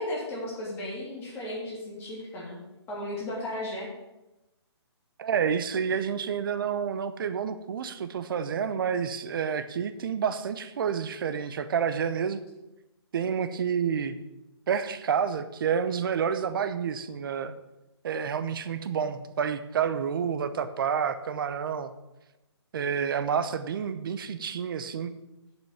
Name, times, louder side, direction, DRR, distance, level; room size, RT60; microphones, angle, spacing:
voice 1, 0.0-2.6 2.9-3.9, left 1 dB, 15° left, -5 dB, 3.0 m, -35 dB
voice 2, 5.2-12.4 13.1-14.2 14.7-17.5 18.0-21.9 22.7-25.1, right 7 dB, 50° right, 11 dB, 0.8 m, -29 dB
7.5 x 6.0 x 7.2 m, 0.98 s
hypercardioid pair, 155°, 15 cm